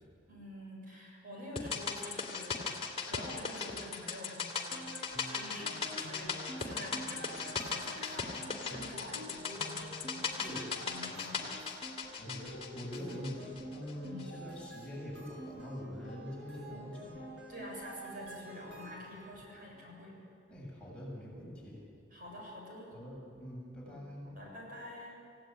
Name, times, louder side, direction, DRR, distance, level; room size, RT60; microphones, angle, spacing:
voice 1, 0.3-4.8 5.3-11.6 14.0-14.4 17.5-20.2 22.1-22.9 23.8-23.9 24.2-25.2, left 1 dB, 50° right, -2 dB, 7.3 m, -47 dB
sound 1, 1.6-13.9 14.2-14.3, left 5 dB, 35° left, 2.7 m, -38 dB
sound 2, 4.7-19.4, equal, 80° right, 6.5 m, -48 dB
voice 2, 12.2-17.2 20.5-21.8 22.9-24.3, equal, 5° left, -5 dB, 6.8 m, -44 dB
28.0 x 17.0 x 9.1 m, 2.5 s
head